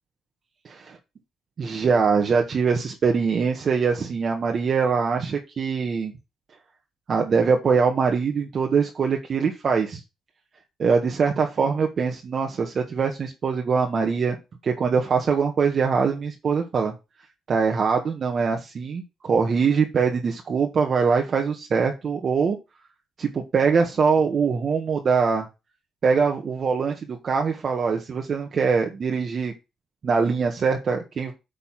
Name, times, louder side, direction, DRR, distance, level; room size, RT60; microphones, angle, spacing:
voice 1, 1.6-6.1 7.1-10.0 10.8-14.3 14.6-16.9 17.5-22.6 23.2-25.5 26.0-29.5 30.0-31.3, right 5 dB, 50° right, 2 dB, 1.5 m, -23 dB
8.8 x 4.1 x 6.0 m, 0.26 s
cardioid pair, 90°, 0 cm